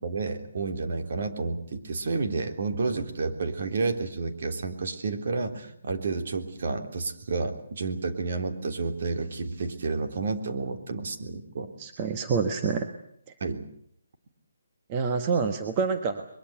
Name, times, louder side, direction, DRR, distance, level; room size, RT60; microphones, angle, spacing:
voice 1, 0.0-11.7 13.4-13.6, right 4 dB, 55° right, 6 dB, 3.5 m, -30 dB
voice 2, 11.8-12.9 14.9-16.3, right 5 dB, 25° right, 6 dB, 1.4 m, -27 dB
22.5 x 22.5 x 8.1 m, 0.66 s
hypercardioid pair, 165°, 0 cm